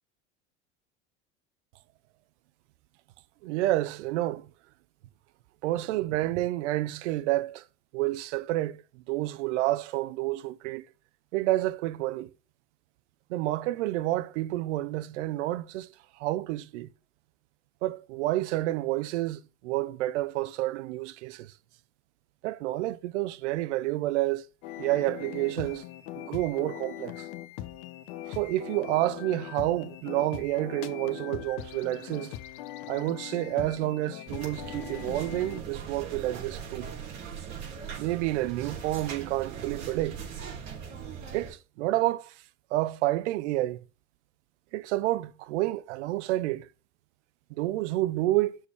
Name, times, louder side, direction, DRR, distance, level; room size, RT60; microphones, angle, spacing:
voice 1, 3.4-4.5 5.6-7.6 7.9-10.8 11.3-12.3 13.3-15.9 16.2-16.9 17.8-21.5 22.4-24.5 24.8-25.8 26.2-27.3 28.3-32.3 32.9-36.9 38.0-40.3 41.3-42.3 42.7-43.8 44.7-46.7 47.6-48.6, right 16 dB, 70° right, 0.7 m, -29 dB
sound 1, 24.6-35.6, left 13 dB, 55° left, 1.0 m, -41 dB
sound 2, 34.3-41.5, right 7 dB, 50° right, 3.8 m, -40 dB
6.6 x 4.4 x 4.6 m
hypercardioid pair, 80°, 36 cm